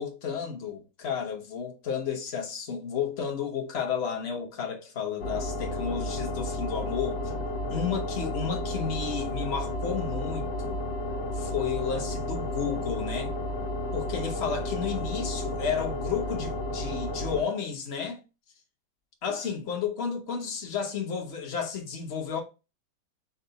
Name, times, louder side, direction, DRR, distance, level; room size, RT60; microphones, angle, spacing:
voice 1, 0.0-7.2 7.7-10.8 11.3-13.3 13.9-18.2 19.2-22.4, left 6 dB, 45° left, 1.0 m, -32 dB
sound 1, 5.2-17.4, left 1 dB, 90° left, 1.6 m, -32 dB
5.7 x 2.1 x 3.9 m
omnidirectional pair, 2.0 m